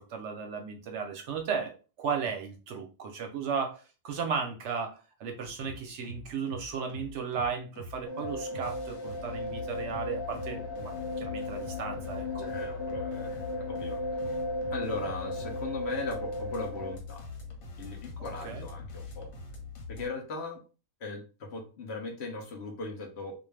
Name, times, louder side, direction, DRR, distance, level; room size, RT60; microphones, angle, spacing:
voice 1, 0.0-12.5 18.2-18.7, right 6 dB, 65° right, 4 dB, 0.8 m, -35 dB
sound 1, 5.4-20.1, left 3 dB, 85° left, 1.2 m, -43 dB
sound 2, 8.1-16.9, left 1 dB, 20° left, 1.2 m, -36 dB
voice 2, 12.4-14.4 14.7-17.2 17.8-19.3 19.9-20.6 21.0-23.3, left 3 dB, 60° left, 2 dB, 0.8 m, -38 dB
2.5 x 2.2 x 3.2 m, 0.33 s
omnidirectional pair, 1.4 m